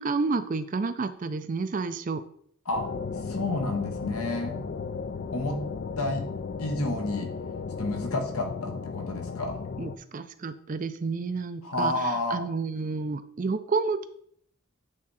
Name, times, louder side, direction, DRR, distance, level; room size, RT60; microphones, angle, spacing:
voice 1, 0.0-2.2 9.8-14.1, right 4 dB, 35° right, 12 dB, 0.4 m, -30 dB
sound 1, 2.7-10.0, left 5 dB, 45° left, 0.3 m, -35 dB
voice 2, 3.2-4.6 5.3-5.6 6.0-6.2 6.6-7.3 7.8-9.6 11.6-12.4, left 2 dB, 80° left, 3 dB, 1.3 m, -30 dB
8.6 x 3.6 x 4.2 m, 0.65 s
head